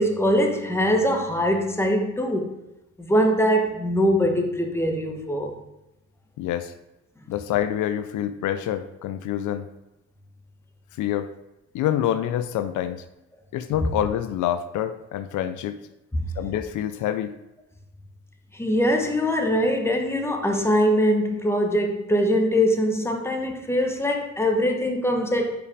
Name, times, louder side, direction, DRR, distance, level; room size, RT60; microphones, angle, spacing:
voice 1, 0.0-2.5 3.0-5.5 18.5-25.6, equal, 10° left, 3 dB, 1.1 m, -22 dB
voice 2, 6.4-6.7 7.3-9.7 10.9-11.3 11.7-13.0 13.5-15.8 16.4-17.3, left 11 dB, 80° left, 10 dB, 0.5 m, -26 dB
5.1 x 4.8 x 4.9 m, 0.92 s
cardioid pair, 90°, 30 cm